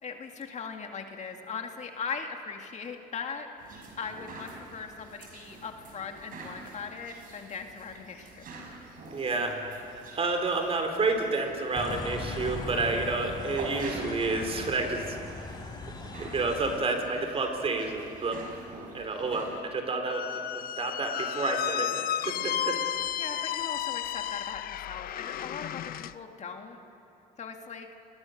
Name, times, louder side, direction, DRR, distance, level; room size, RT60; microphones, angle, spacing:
voice 1, 0.0-3.5 4.0-8.5 23.2-26.8 27.4-27.9, left 5 dB, 45° left, 4 dB, 2.1 m, -39 dB
sound 1, 3.6-19.6, right 2 dB, 55° right, 5.9 m, -46 dB
voice 2, 9.1-9.6 10.2-15.2 16.2-18.4 18.9-22.8, right 3 dB, 35° right, 4 dB, 3.8 m, -30 dB
sound 2, 11.7-16.8, left 3 dB, 25° left, 3.5 m, -39 dB
Squeak, 20.0-26.1, left 11 dB, 60° left, 0.6 m, -33 dB
29.5 x 21.5 x 6.6 m, 2.7 s
cardioid pair, 110°, 17 cm